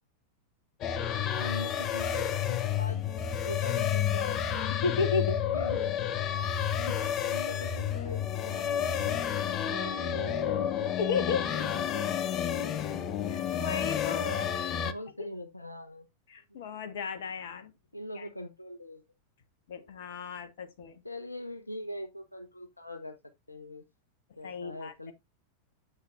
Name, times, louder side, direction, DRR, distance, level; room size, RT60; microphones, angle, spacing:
sound 1, 0.8-14.9, left 9 dB, 35° left, 0.8 m, -30 dB
voice 1, 1.2-3.0 3.4-4.9 5.5-5.8 6.7-8.8 9.1-10.9 11.4-12.7 14.1-16.1 16.5-16.6 17.9-19.0 21.0-23.2 23.5-23.8 24.4-25.1, left 1 dB, 85° left, 0.9 m, -42 dB
voice 2, 4.8-5.4 7.0-7.1 11.0-11.4 13.3-14.3 16.3-17.7 18.2-18.3 19.7-21.0 24.4-24.9, left 5 dB, 55° left, 1.3 m, -33 dB
9.4 x 7.7 x 2.5 m
figure-of-eight pair, 90°, 0 cm